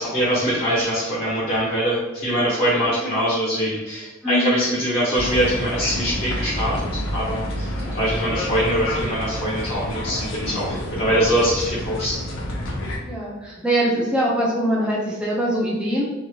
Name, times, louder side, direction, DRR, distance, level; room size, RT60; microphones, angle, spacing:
voice 1, 0.0-12.2, equal, 45° left, -8 dB, 0.8 m, -23 dB
voice 2, 4.2-4.5 7.7-8.0 13.0-16.0, equal, 5° right, -5 dB, 0.5 m, -23 dB
sound 1, 5.1-13.0, left 1 dB, 85° left, 0.7 m, -28 dB
3.0 x 2.5 x 2.7 m, 1.1 s
head